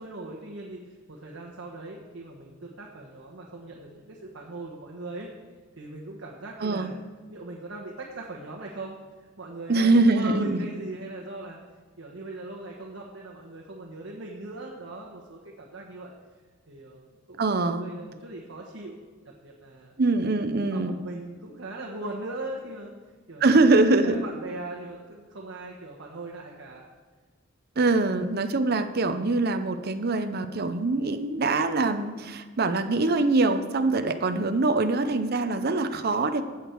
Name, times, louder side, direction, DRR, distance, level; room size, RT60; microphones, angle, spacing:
voice 1, 0.0-5.3 5.8-7.0 7.3-11.6 12.0-16.1 16.7-19.0 19.2-19.9 20.7-22.9 23.3-26.9, right 2 dB, 75° right, -1 dB, 1.3 m, -39 dB
voice 2, 6.6-6.9 9.7-10.6 17.4-17.9 20.0-20.9 23.4-24.2 27.8-36.4, right 3 dB, 50° right, 8 dB, 0.7 m, -23 dB
15.0 x 8.2 x 4.6 m, 1.4 s
head